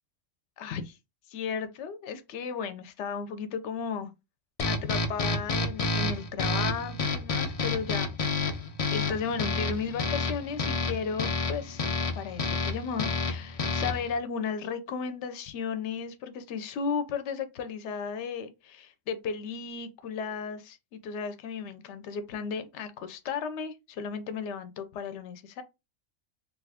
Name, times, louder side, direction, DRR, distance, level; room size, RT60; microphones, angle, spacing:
voice 1, 0.6-1.0 1.3-4.1 4.6-8.1 8.5-8.6 8.9-11.9 12.2-25.6, left 6 dB, 75° left, 0.9 m, -35 dB
sound 1, 4.6-14.1, left 3 dB, 55° left, 0.4 m, -30 dB
2.8 x 2.4 x 3.4 m
omnidirectional pair, 1.3 m